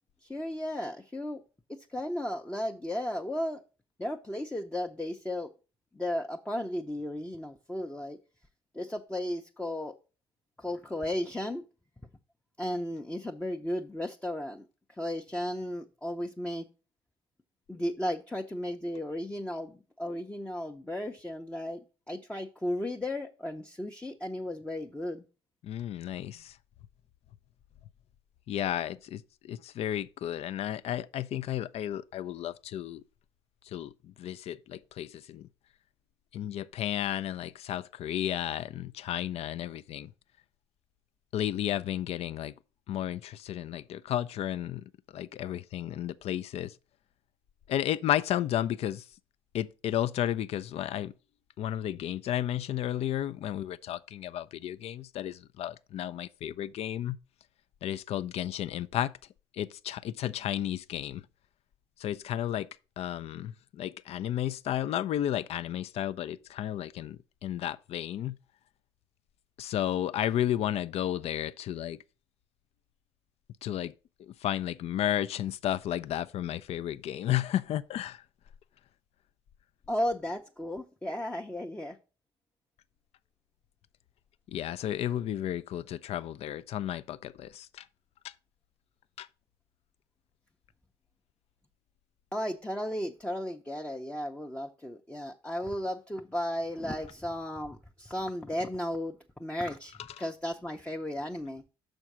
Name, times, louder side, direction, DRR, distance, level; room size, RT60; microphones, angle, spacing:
voice 1, 0.2-1.4 1.9-3.6 4.0-5.5 5.9-8.2 8.7-9.9 10.6-11.6 12.6-16.7 17.7-21.8 22.1-25.2 79.9-82.0 92.3-101.6, left 1 dB, 10° left, 0.7 m, -34 dB
voice 2, 25.6-26.6 28.5-33.0 33.7-35.5 36.3-40.1 41.3-42.5 42.9-44.8 45.1-46.7 47.7-49.0 49.5-51.1 51.6-57.2 57.8-59.1 59.5-61.2 62.0-62.7 63.0-68.4 69.6-72.0 73.6-73.9 74.2-78.2 84.5-87.8 88.2-88.3 89.2-89.3 100.2-100.3, left 11 dB, 50° left, 0.4 m, -33 dB
6.3 x 4.4 x 6.1 m
hypercardioid pair, 55°, 13 cm